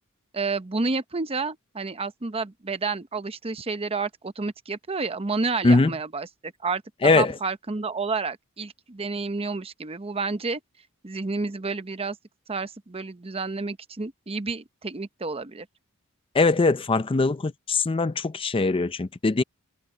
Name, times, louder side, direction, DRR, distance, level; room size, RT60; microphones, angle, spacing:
voice 1, 0.3-10.6 11.0-12.2 12.5-15.7, right 4 dB, 25° right, 0.8 m, -30 dB
voice 2, 7.0-7.3 16.3-19.4, left 3 dB, 25° left, 0.5 m, -21 dB
head